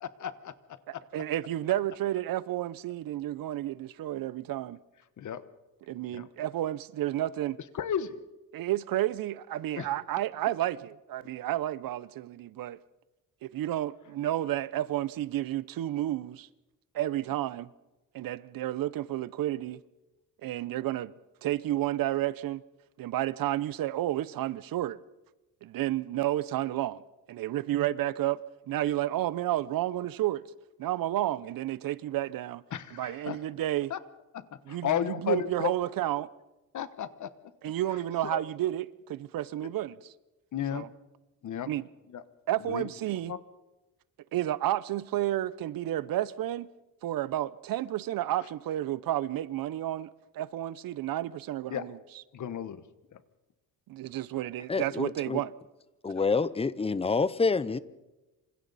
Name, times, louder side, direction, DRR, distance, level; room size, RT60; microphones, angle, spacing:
voice 1, 0.0-0.5 0.9-1.0 5.2-5.4 6.1-6.3 7.7-8.2 9.8-9.9 32.7-33.4 33.9-34.0 34.3-35.7 36.7-37.3 38.2-38.4 40.5-40.9 41.4-41.7 42.1-42.2 42.6-42.9 43.3-43.4 51.7-51.9 52.3-52.8 53.1-53.2 56.1-56.2, left 9 dB, 55° left, 1.2 m, -33 dB
voice 2, 0.9-4.8 5.9-7.6 8.5-12.8 13.4-16.5 16.9-17.7 18.1-19.8 20.4-21.1 21.4-22.6 23.0-25.0 25.6-27.0 27.3-28.4 28.7-30.4 30.8-32.6 32.9-33.9 34.7-34.9 35.2-36.3 37.6-40.0 40.7-40.9 41.7-41.8 42.5-43.3 44.3-46.7 47.0-50.1 50.3-52.0 53.9-55.5, right 13 dB, 65° right, 0.7 m, -31 dB
voice 3, 54.7-55.4 56.0-57.8, left 4 dB, 15° left, 0.6 m, -27 dB
27.0 x 26.0 x 4.1 m
cardioid pair, 135°, 36 cm